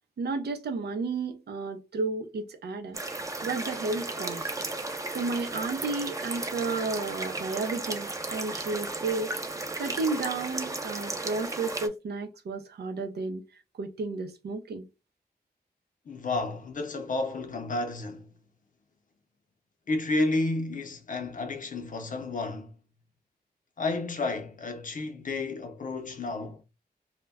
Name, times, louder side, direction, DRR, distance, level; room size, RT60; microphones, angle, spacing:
voice 1, 0.2-3.0 3.4-4.5 5.1-9.4 9.8-13.4 13.8-14.8, right 3 dB, 85° right, 0.5 m, -32 dB
sound 1, 2.9-11.9, right 2 dB, 20° right, 0.4 m, -35 dB
voice 2, 16.1-18.3 19.9-22.7 23.8-26.6, left 2 dB, 55° left, 0.6 m, -31 dB
2.1 x 2.1 x 3.4 m
wide cardioid pair, 90°, 16 cm